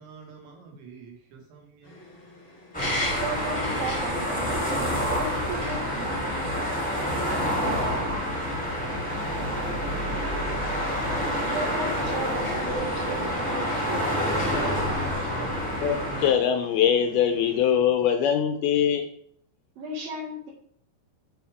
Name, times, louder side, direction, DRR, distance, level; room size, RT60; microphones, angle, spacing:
voice 1, 0.0-1.9 7.2-10.6, right 5 dB, 80° right, 1 dB, 4.0 m, -47 dB
sound 1, 1.8-17.8, left 2 dB, 35° left, 0.9 m, -42 dB
sound 2, 2.7-16.3, equal, 5° left, 1.1 m, -28 dB
voice 2, 3.2-6.6 9.2-9.3 11.4-15.0 19.8-20.5, right 2 dB, 60° right, -7 dB, 3.3 m, -35 dB
voice 3, 15.8-19.1, left 8 dB, 85° left, 6 dB, 2.3 m, -22 dB
9.1 x 7.1 x 3.5 m, 0.63 s
omnidirectional pair, 5.1 m